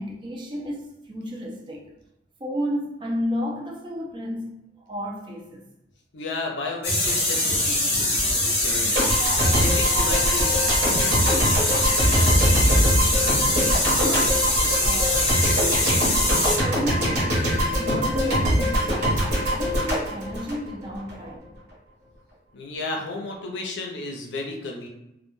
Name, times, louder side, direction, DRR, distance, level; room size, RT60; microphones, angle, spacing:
voice 1, 0.0-1.9 2.4-4.5 4.8-5.7 13.3-14.5 14.8-15.4 16.5-17.4 17.8-21.5, equal, 25° right, 0.3 m, -32 dB
voice 2, 6.1-11.2 11.7-12.5 22.5-24.9, left 3 dB, 65° left, 0.5 m, -34 dB
sound 1, 6.8-16.6, left 1 dB, 30° left, 0.7 m, -23 dB
sound 2, 8.9-21.1, equal, 55° right, 0.8 m, -23 dB
sound 3, 9.2-21.4, equal, 75° right, 0.5 m, -41 dB
2.2 x 2.2 x 3.0 m
head